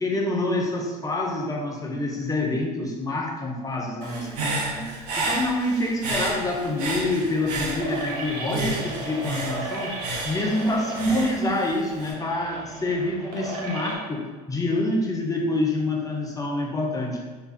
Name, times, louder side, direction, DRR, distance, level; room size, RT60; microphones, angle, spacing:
voice 1, 0.0-4.8 5.2-9.9 10.2-17.2, left 2 dB, 15° left, 0 dB, 1.0 m, -27 dB
Human voice / Breathing, 4.0-8.2 8.5-12.1, right 2 dB, 75° right, 1.0 m, -31 dB
sound 1, 6.6-13.9, right 2 dB, 50° right, 1.2 m, -35 dB
3.3 x 3.3 x 4.1 m, 1.4 s
hypercardioid pair, 85°, 20 cm